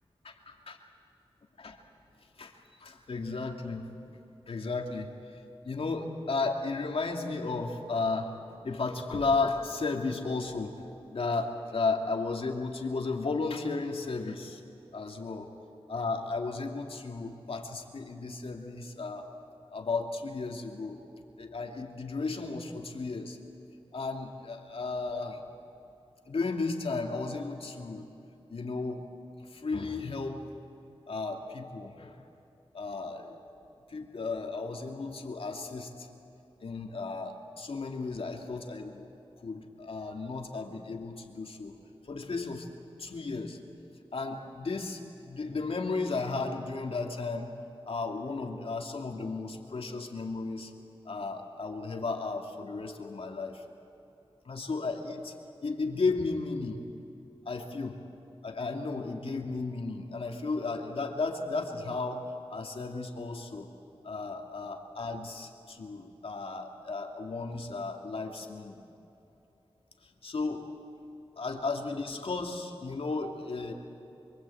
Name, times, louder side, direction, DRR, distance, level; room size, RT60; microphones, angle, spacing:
voice 1, 2.8-4.1 4.5-8.4 8.6-10.7 11.1-14.6 14.9-15.5 15.9-19.3 19.7-21.0 21.4-23.4 23.9-25.4 26.2-28.1 28.5-29.1 29.4-30.4 31.1-32.2 32.7-33.4 33.9-36.1 36.6-41.8 42.0-42.7 43.0-43.6 44.1-47.5 47.9-50.7 51.0-53.6 54.4-55.3 55.6-56.8 57.5-58.0 58.4-62.2 62.5-63.7 64.0-68.8 70.0-70.7 71.4-73.7, left 3 dB, 70° left, 2 dB, 2.6 m, -34 dB
26.0 x 24.0 x 8.6 m, 2.9 s
wide cardioid pair, 105°, 10 cm